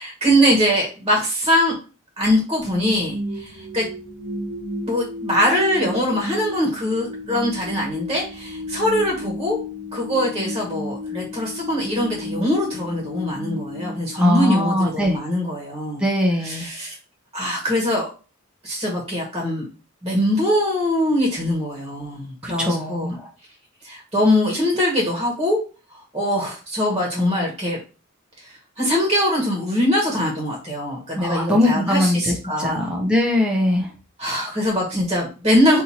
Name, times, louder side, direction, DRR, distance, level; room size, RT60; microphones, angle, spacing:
voice 1, 0.0-1.8 2.2-3.9 4.9-9.6 9.9-16.0 16.4-16.9 17.3-18.1 18.6-19.7 20.0-23.2 23.8-25.6 25.9-27.8 28.4-28.5 28.8-32.9 34.2-35.8, equal, 20° right, -2 dB, 1.2 m, -22 dB
sound 1, 2.6-14.8, left 1 dB, 55° right, 0.9 m, -32 dB
voice 2, 14.2-15.2 16.0-16.7 22.4-23.3 31.1-33.9, left 1 dB, 5° right, -1 dB, 0.7 m, -21 dB
4.4 x 2.7 x 4.1 m, 0.35 s
head